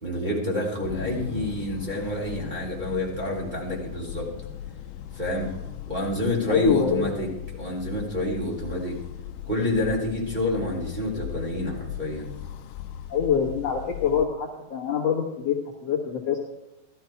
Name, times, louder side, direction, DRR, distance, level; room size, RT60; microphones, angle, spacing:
voice 1, 0.0-4.3 5.1-5.5 5.9-7.3 7.6-9.0 9.4-12.3, left 1 dB, 10° right, -3 dB, 2.8 m, -28 dB
sound 1, 0.8-14.3, left 10 dB, 90° left, 1.8 m, -38 dB
voice 2, 6.5-7.1 13.1-16.4, left 7 dB, 55° left, -3 dB, 2.0 m, -25 dB
15.0 x 13.5 x 4.5 m, 0.93 s
omnidirectional pair, 4.6 m